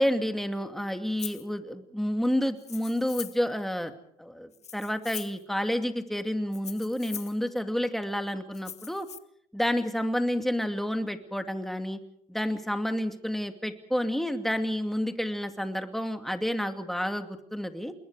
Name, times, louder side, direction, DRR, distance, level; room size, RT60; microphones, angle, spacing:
voice 1, 0.0-9.1 9.5-12.0 12.3-17.9, equal, ahead, 7 dB, 2.5 m, -30 dB
Rattle (instrument), 1.2-1.5 2.6-3.5 4.5-5.4 6.5-7.4 8.5-9.2, left 7 dB, 35° left, 1.3 m, -41 dB
28.5 x 21.0 x 5.0 m, 0.69 s
supercardioid pair, 80°, 18 cm